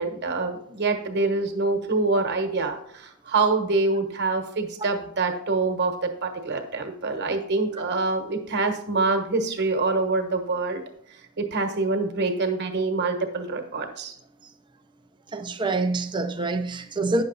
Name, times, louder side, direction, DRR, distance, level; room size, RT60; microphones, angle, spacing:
voice 1, 0.0-10.8 11.4-14.1, right 3 dB, 50° right, 1.2 m, -25 dB
voice 2, 15.3-17.2, right 2 dB, 20° right, 0.5 m, -26 dB
9.7 x 6.6 x 4.0 m
head